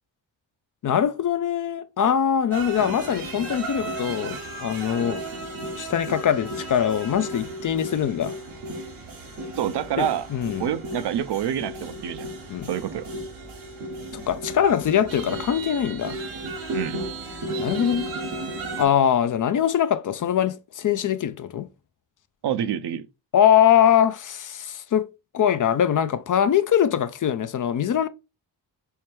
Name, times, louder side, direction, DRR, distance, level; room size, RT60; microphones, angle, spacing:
voice 1, 0.8-5.2 5.7-8.3 10.0-10.7 12.5-12.7 14.1-16.2 17.6-18.1 18.8-21.7 23.3-25.1 25.3-28.1, left 9 dB, 45° left, 0.4 m, -22 dB
sound 1, 2.5-18.9, right 1 dB, 85° right, 1.1 m, -34 dB
voice 2, 9.6-10.3 10.6-12.3 12.6-13.1 16.7-17.0 22.4-23.1, right 10 dB, 60° right, 0.5 m, -27 dB
4.5 x 2.2 x 3.2 m
supercardioid pair, 40°, 46 cm